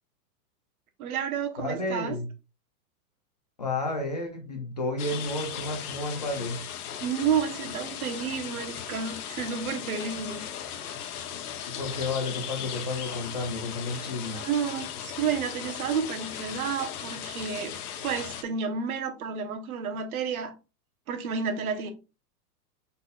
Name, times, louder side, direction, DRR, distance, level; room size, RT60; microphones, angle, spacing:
voice 1, 1.0-2.2 7.0-10.4 14.2-17.8 18.0-20.5 21.1-21.9, right 6 dB, 65° right, 1.1 m, -31 dB
voice 2, 1.6-2.3 3.6-6.6 11.6-14.4, left 2 dB, 30° left, 0.4 m, -31 dB
sound 1, 5.0-18.4, left 9 dB, 65° left, 1.0 m, -37 dB
5.1 x 4.2 x 2.4 m
supercardioid pair, 170°, 48 cm